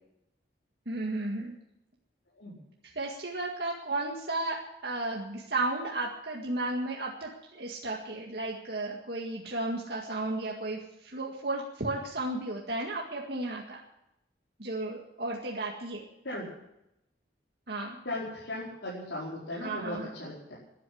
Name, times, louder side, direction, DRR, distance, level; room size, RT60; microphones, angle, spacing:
voice 1, 0.9-1.5 3.0-4.6 4.8-13.8 14.6-16.0 17.7-18.0 19.5-20.1, right 2 dB, 65° right, -2 dB, 2.0 m, -34 dB
voice 2, 18.0-20.6, left 1 dB, 85° left, -7 dB, 4.9 m, -37 dB
13.0 x 11.5 x 9.6 m, 0.85 s
head